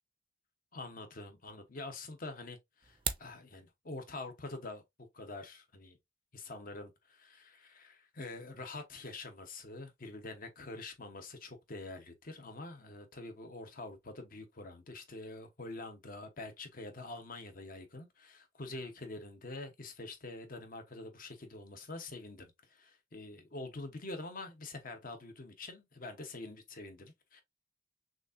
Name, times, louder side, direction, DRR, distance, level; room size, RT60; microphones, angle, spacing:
voice 1, 0.7-4.8 5.1-6.0 6.3-27.4, left 2 dB, 45° left, 1.0 m, -46 dB
sound 1, 2.8-3.4, right 7 dB, 25° right, 0.5 m, -37 dB
6.1 x 2.5 x 2.6 m
head